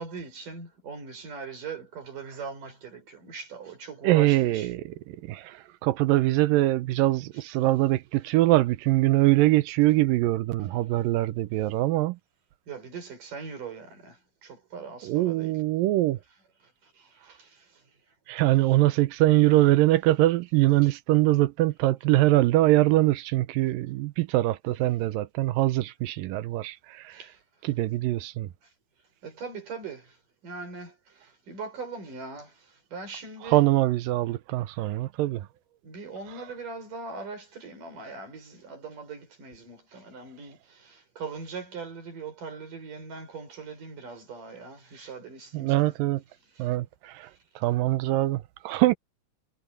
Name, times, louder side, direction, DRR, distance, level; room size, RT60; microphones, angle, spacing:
voice 1, 0.0-4.7 12.7-14.2 14.4-15.6 17.3-17.5 18.4-18.6 20.8-20.9 27.1-27.3 29.2-30.1 30.4-30.9 31.5-32.5 32.9-33.6 35.8-45.9, right 4 dB, 70° right, 7.4 m, -40 dB
voice 2, 4.0-12.2 15.0-16.2 18.3-27.2 27.6-28.5 33.4-35.5 45.5-46.2 46.6-47.3 47.6-49.0, right 16 dB, 90° right, 2.5 m, -23 dB
omnidirectional pair, 3.8 m